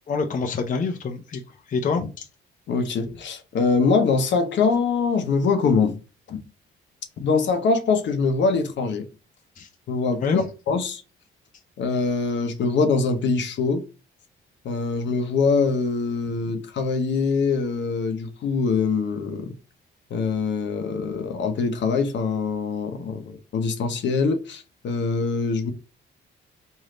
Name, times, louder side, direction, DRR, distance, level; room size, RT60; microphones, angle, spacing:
voice 1, 0.1-1.4 1.7-2.3 9.6-9.7 10.2-10.5, left 4 dB, 40° left, 0.7 m, -26 dB
voice 2, 2.7-6.0 6.3-6.4 7.2-9.1 9.9-11.0 11.8-13.8 14.6-19.5 20.1-25.7, left 4 dB, 65° left, 0.9 m, -23 dB
3.2 x 2.8 x 3.7 m
cardioid pair, 90°, 20 cm